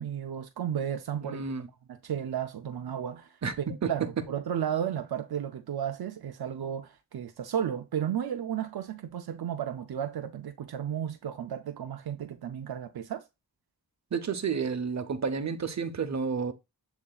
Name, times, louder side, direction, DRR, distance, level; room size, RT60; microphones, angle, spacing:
voice 1, 0.0-1.4 1.9-3.3 3.8-13.2, right 9 dB, 80° right, 0.5 m, -33 dB
voice 2, 1.2-1.7 3.4-4.2 14.1-16.5, right 5 dB, 45° right, 0.7 m, -31 dB
7.4 x 2.7 x 2.3 m
cardioid pair, 50°, 37 cm